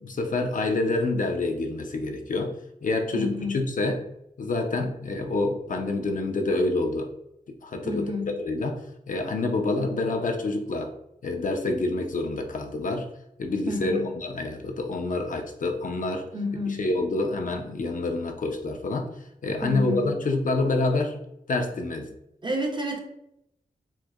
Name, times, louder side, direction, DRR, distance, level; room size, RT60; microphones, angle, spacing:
voice 1, 0.0-2.5 2.8-4.0 4.4-7.1 7.5-8.1 8.4-8.8 9.1-10.9 11.2-13.1 13.4-16.3 16.8-19.1 19.4-21.2 21.5-22.1, left 2 dB, 60° left, 4 dB, 0.5 m, -27 dB
voice 2, 3.1-3.6 7.8-8.4 13.7-14.1 16.3-16.9 19.6-20.1 22.4-23.0, left 2 dB, 30° right, 2 dB, 0.6 m, -30 dB
4.5 x 2.1 x 2.3 m, 0.81 s
wide cardioid pair, 85°, 15 cm